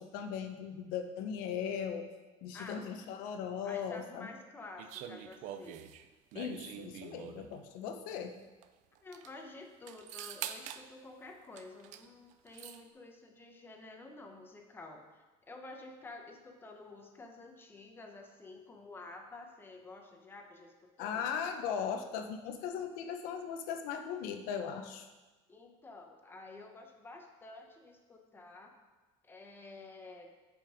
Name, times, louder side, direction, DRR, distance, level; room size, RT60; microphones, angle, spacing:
voice 1, 0.0-2.1 2.4-4.3 6.3-8.4 21.0-25.1, left 7 dB, 70° left, 6 dB, 0.8 m, -38 dB
voice 2, 2.5-2.9 3.6-5.9 9.0-21.2 25.5-28.7 29.2-30.3, left 2 dB, 15° left, 3 dB, 0.9 m, -50 dB
sound 1, 4.8-7.6 8.6-8.7 9.0-9.3 9.9-10.9 11.6-12.1 12.3-12.8, right 10 dB, 55° right, 0.5 m, -45 dB
7.7 x 5.2 x 5.1 m, 1.2 s
cardioid pair, 160°, 15 cm